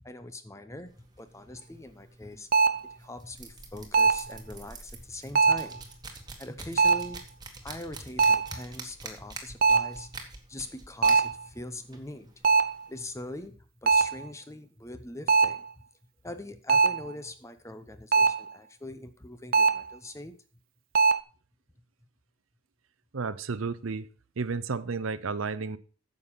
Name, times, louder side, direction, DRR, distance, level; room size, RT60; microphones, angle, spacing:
voice 1, 0.0-2.5 3.0-5.8 6.4-7.2 7.6-10.1 10.5-12.3 12.9-15.6 16.2-20.3, left 1 dB, 15° left, 10 dB, 0.8 m, -42 dB
sound 1, 0.9-13.5, right 3 dB, 20° right, 1.6 m, -47 dB
sound 2, 2.5-2.9 3.9-4.3 5.4-5.8 6.8-7.2 8.2-8.6 9.6-10.0 11.0-11.4 12.4-12.8 13.9-14.2 15.3-15.6 16.7-17.1 18.1-18.5 19.5-19.9 20.9-21.2, right 4 dB, 45° right, 0.5 m, -22 dB
voice 2, 23.1-24.1 24.4-25.8, right 4 dB, 80° right, 15 dB, 0.7 m, -32 dB
9.4 x 6.9 x 5.6 m, 0.39 s
head